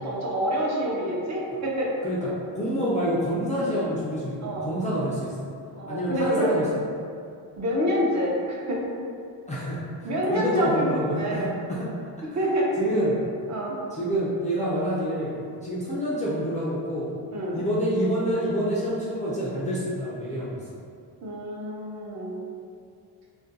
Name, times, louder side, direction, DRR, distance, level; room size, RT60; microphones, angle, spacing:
voice 1, 0.0-1.9 4.4-4.7 5.7-6.6 7.6-8.8 10.0-11.5 12.3-12.7 13.5-13.8 17.3-17.6 21.2-22.4, equal, 40° right, -4 dB, 0.6 m, -27 dB
voice 2, 2.5-5.3 5.9-6.6 9.5-11.9 12.8-13.2 13.9-17.1 17.5-20.6, equal, 20° left, -8 dB, 0.4 m, -27 dB
2.5 x 2.2 x 3.9 m, 2.4 s
cardioid pair, 130°, 43 cm